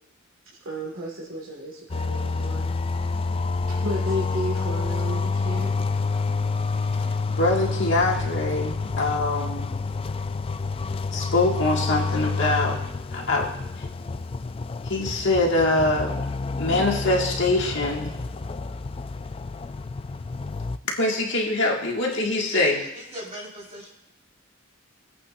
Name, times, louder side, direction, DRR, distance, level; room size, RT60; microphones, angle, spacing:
voice 1, 0.7-2.7 3.7-6.1, equal, 85° right, -4 dB, 2.0 m, -33 dB
sound 1, 1.9-20.8, left 4 dB, 30° left, 0.3 m, -28 dB
voice 2, 7.3-9.7 11.1-12.8 13.1-13.5 13.8-13.9 14.8-16.1 16.6-18.2 21.0-22.8, left 2 dB, 65° left, -1 dB, 2.0 m, -23 dB
voice 3, 22.5-23.9, equal, 35° right, -4 dB, 4.2 m, -36 dB
24.0 x 8.5 x 2.6 m, 0.80 s
head